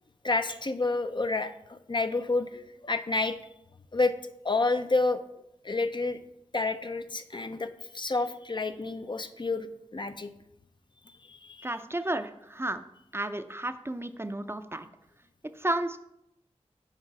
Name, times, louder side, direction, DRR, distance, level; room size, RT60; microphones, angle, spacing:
voice 1, 0.2-3.4 3.9-4.1 4.4-5.2 5.6-6.2 6.5-10.3 11.3-11.7, left 3 dB, 40° left, 9 dB, 0.5 m, -29 dB
voice 2, 11.6-12.9 13.1-14.9 15.6-16.0, right 1 dB, 20° right, 9 dB, 0.5 m, -32 dB
6.6 x 4.8 x 4.7 m, 0.82 s
wide cardioid pair, 45°, 12 cm